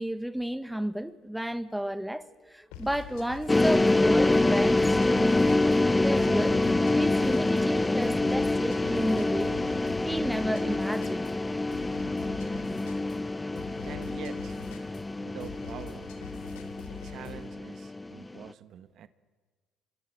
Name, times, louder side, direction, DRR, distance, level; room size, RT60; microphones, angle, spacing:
voice 1, 0.0-5.4 6.0-6.6 7.0-9.6 10.0-11.2, equal, 5° right, 1.3 m, -32 dB
sound 1, 2.7-17.5, left 7 dB, 75° left, 3.4 m, -46 dB
sound 2, 3.5-18.4, left 2 dB, 15° left, 0.9 m, -26 dB
voice 2, 13.8-14.6 15.2-16.2 17.0-19.1, right 10 dB, 55° right, 1.3 m, -45 dB
25.5 x 22.5 x 8.8 m
hypercardioid pair, 60°, 0 cm